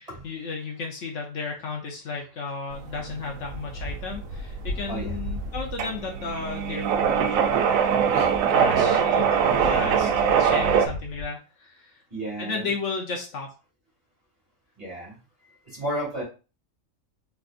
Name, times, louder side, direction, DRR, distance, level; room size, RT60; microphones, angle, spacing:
voice 1, 0.0-7.3 8.5-9.3 9.6-10.1 10.4-12.0 12.4-13.5, left 4 dB, 65° left, 1 dB, 1.0 m, -33 dB
sound 1, 2.7-10.9, right 7 dB, 85° right, 1.0 m, -23 dB
voice 2, 4.9-5.2 8.1-8.3 9.5-10.3 12.1-12.7 14.8-15.1 15.7-16.2, equal, 30° right, -4 dB, 2.3 m, -32 dB
3.9 x 3.5 x 2.5 m, 0.33 s
omnidirectional pair, 1.4 m